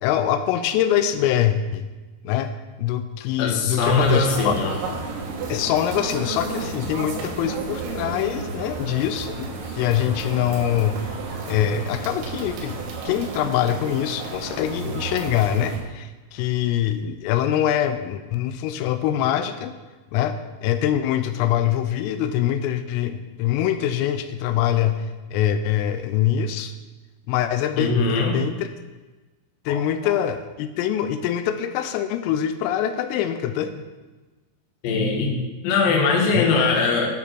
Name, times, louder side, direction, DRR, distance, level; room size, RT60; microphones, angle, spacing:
voice 1, 0.0-1.9 2.2-2.5 2.8-4.6 5.5-11.0 11.5-12.8 13.1-19.7 20.1-26.7 27.3-28.7 29.7-33.8 36.3-36.6, left 10 dB, 90° left, 9 dB, 3.2 m, -24 dB
voice 2, 3.4-4.7 27.8-28.4 29.7-29.8 34.8-35.4 35.6-37.1, left 3 dB, 65° left, 0 dB, 2.4 m, -21 dB
sound 1, 3.8-15.8, right 4 dB, 70° right, 3.5 m, -32 dB
9.6 x 7.0 x 4.4 m, 1.2 s
omnidirectional pair, 5.8 m